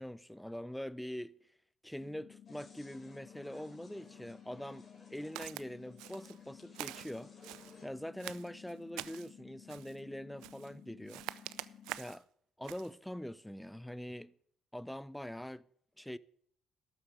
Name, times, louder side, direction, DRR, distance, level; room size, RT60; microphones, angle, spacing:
voice 1, 0.0-1.4 1.8-4.9 5.1-7.3 7.8-11.2 12.0-12.2 12.6-14.3 14.7-15.6 16.0-16.2, equal, 5° left, 0.6 m, -43 dB
sound 1, 2.0-12.0, left 9 dB, 60° left, 0.5 m, -56 dB
sound 2, 2.5-7.9, left 2 dB, 35° left, 4.0 m, -61 dB
Walk footsteps, 5.4-5.7 6.0-6.4 6.7-7.8 8.2-9.3 9.7-10.0 10.4-10.7 11.1-12.2 12.6-12.9, right 17 dB, 75° right, 0.4 m, -45 dB
12.5 x 7.1 x 8.1 m
hypercardioid pair, 55°, 0 cm